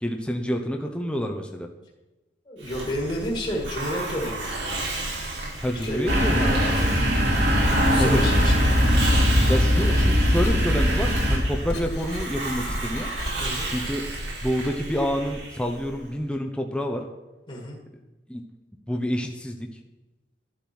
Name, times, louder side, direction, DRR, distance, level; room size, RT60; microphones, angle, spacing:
voice 1, 0.0-1.7 5.6-6.5 8.0-8.2 9.5-13.1 13.7-14.1 14.4-17.0 18.3-18.4 18.9-19.7, equal, 5° left, 2 dB, 0.9 m, -28 dB
voice 2, 2.5-4.5 5.7-7.2 7.6-8.6 13.4-13.7 17.5-17.8, equal, 30° left, -2 dB, 2.0 m, -31 dB
Hiss, 2.6-16.1, right 2 dB, 85° right, 4.3 m, -33 dB
sound 1, 6.1-11.4, equal, 65° right, 3.8 m, -20 dB
Writing, 7.5-13.7, left 1 dB, 70° left, 3.4 m, -35 dB
12.0 x 10.0 x 6.1 m, 1.1 s
head